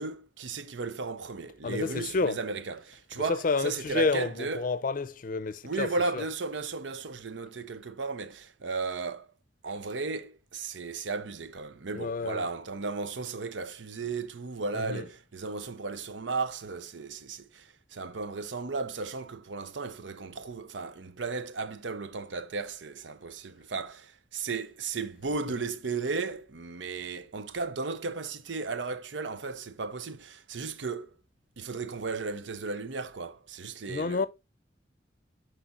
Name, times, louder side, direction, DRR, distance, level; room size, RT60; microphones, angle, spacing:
voice 1, 0.0-4.7 5.6-9.3 9.6-31.1 31.6-34.3, right 4 dB, 90° right, 0.8 m, -35 dB
voice 2, 1.6-2.4 3.1-6.2 11.9-12.5 14.7-15.1 33.9-34.3, left 4 dB, 50° left, 0.5 m, -30 dB
10.0 x 5.0 x 2.5 m
head